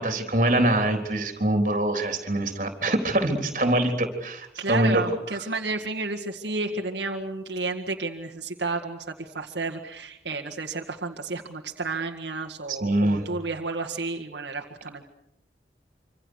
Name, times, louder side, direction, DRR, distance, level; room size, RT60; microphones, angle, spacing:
voice 1, 0.0-5.0 12.7-13.2, right 1 dB, 45° right, 6 dB, 3.8 m, -24 dB
voice 2, 4.6-15.0, right 3 dB, 85° right, 1 dB, 1.9 m, -31 dB
26.0 x 26.0 x 6.5 m, 0.79 s
head